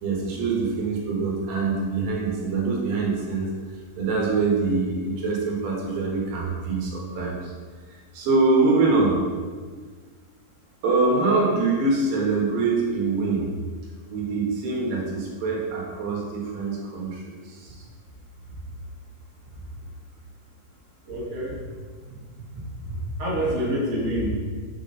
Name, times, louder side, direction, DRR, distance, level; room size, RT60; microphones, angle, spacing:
voice 1, 0.0-3.5 4.0-7.5 8.1-9.2 10.8-13.5 14.1-17.8, right 3 dB, 70° right, -3 dB, 2.7 m, -24 dB
voice 2, 21.1-21.5 22.1-22.2 22.5-22.6 23.2-24.3, equal, 50° right, -6 dB, 0.8 m, -26 dB
7.5 x 4.8 x 4.0 m, 1.6 s
omnidirectional pair, 4.6 m